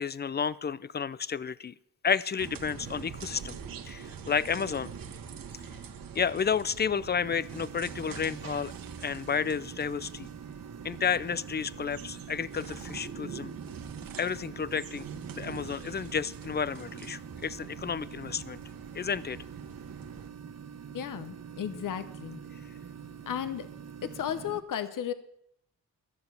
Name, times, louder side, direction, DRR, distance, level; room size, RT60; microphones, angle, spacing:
voice 1, 0.0-1.7 2.0-3.6 3.8-4.9 6.1-8.7 9.0-10.3 10.8-13.5 14.2-15.1 15.3-18.6 18.9-19.4, left 6 dB, 30° left, 19 dB, 0.5 m, -31 dB
sound 1, 2.4-20.3, right 6 dB, 70° right, 1.3 m, -45 dB
sound 2, 7.2-24.6, right 7 dB, 45° right, 1.0 m, -45 dB
voice 2, 20.9-22.4 23.3-23.7 24.0-25.1, left 9 dB, 65° left, 13 dB, 0.9 m, -34 dB
12.5 x 6.7 x 9.5 m, 0.73 s
cardioid pair, 90°, 35 cm